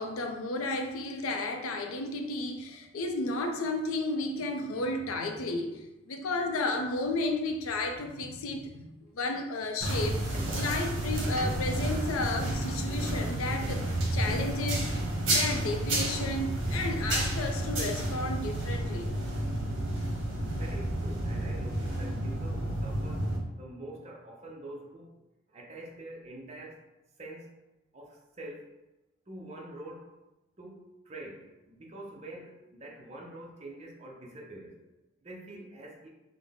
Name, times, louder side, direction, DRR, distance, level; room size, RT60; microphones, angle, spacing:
voice 1, 0.0-10.2 10.5-13.8 14.1-14.9 15.3-19.1, left 2 dB, 85° left, 5 dB, 0.5 m, -33 dB
sound 1, 9.8-23.4, right 1 dB, 60° right, 0.8 m, -31 dB
voice 2, 20.5-23.3 23.6-25.1 25.5-26.8 27.2-27.5 27.9-28.7 29.3-30.1 30.6-34.8 35.2-36.1, right 1 dB, 30° right, -2 dB, 0.5 m, -45 dB
3.6 x 2.0 x 3.5 m, 1.0 s
head